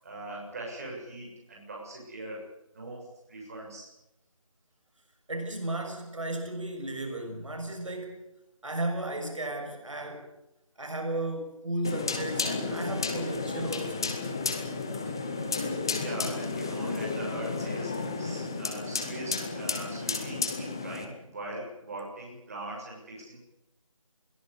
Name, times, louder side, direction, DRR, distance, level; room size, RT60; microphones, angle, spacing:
voice 1, 0.0-2.5 2.7-3.9 15.1-15.2 15.4-15.5 15.9-23.4, right 1 dB, 25° right, -2 dB, 7.0 m, -41 dB
voice 2, 5.3-8.2 8.6-10.3 10.8-14.1 14.9-15.0, right 1 dB, 65° right, 4 dB, 6.7 m, -34 dB
sound 1, 11.8-21.0, left 4 dB, 5° left, 0.7 m, -32 dB
22.0 x 17.5 x 8.3 m, 0.90 s
figure-of-eight pair, 170°, 18 cm